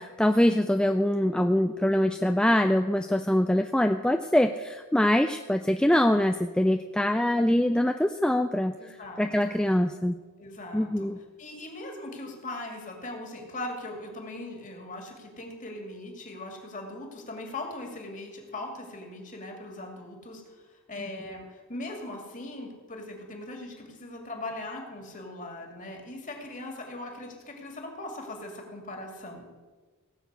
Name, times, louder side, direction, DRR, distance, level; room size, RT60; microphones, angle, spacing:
voice 1, 0.0-8.7 9.2-10.1 10.7-11.2, left 1 dB, 5° left, 6 dB, 0.3 m, -24 dB
voice 2, 8.8-9.5 10.4-11.1 11.4-29.4, left 2 dB, 35° left, 2 dB, 2.5 m, -40 dB
17.5 x 6.3 x 8.1 m, 1.3 s
head